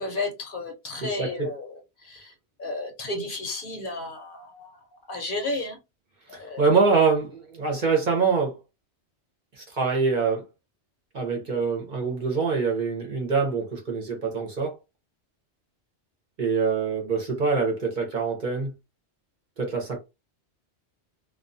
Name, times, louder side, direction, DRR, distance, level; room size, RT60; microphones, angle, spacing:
voice 1, 0.0-2.3 2.6-4.8 5.1-5.8 6.3-6.6, left 2 dB, 55° left, 0.8 m, -33 dB
voice 2, 1.0-1.5 6.3-8.6 9.6-10.5 11.1-14.7 16.4-18.7 19.6-20.0, right 4 dB, 50° right, 0.7 m, -25 dB
2.3 x 2.2 x 2.5 m
omnidirectional pair, 1.2 m